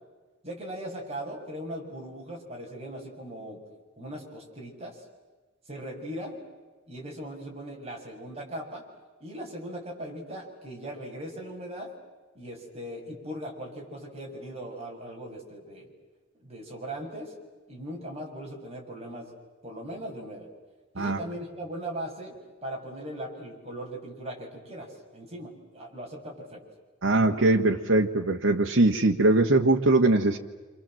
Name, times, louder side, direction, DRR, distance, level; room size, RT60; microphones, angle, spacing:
voice 1, 0.4-3.6 4.0-5.0 5.7-6.4 6.9-8.8 9.2-11.9 12.4-15.9 16.4-17.3 17.7-19.3 19.6-20.5 20.9-22.3 22.6-26.6, right 1 dB, 30° right, -1 dB, 6.9 m, -39 dB
voice 2, 27.0-30.4, right 2 dB, 85° right, 1 dB, 1.6 m, -21 dB
28.5 x 27.0 x 7.7 m, 1.3 s
head